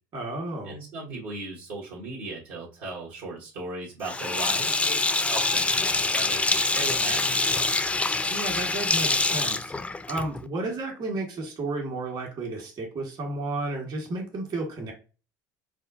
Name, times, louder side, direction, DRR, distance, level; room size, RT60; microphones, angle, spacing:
voice 1, 0.1-0.8 8.3-14.9, right 2 dB, 50° right, 1 dB, 1.6 m, -32 dB
voice 2, 0.6-7.8, right 2 dB, 70° right, -5 dB, 1.2 m, -37 dB
Sink (filling or washing), 4.0-10.4, left 3 dB, 15° left, 0.4 m, -25 dB
4.8 x 2.3 x 2.6 m, 0.33 s
hypercardioid pair, 70°, 9 cm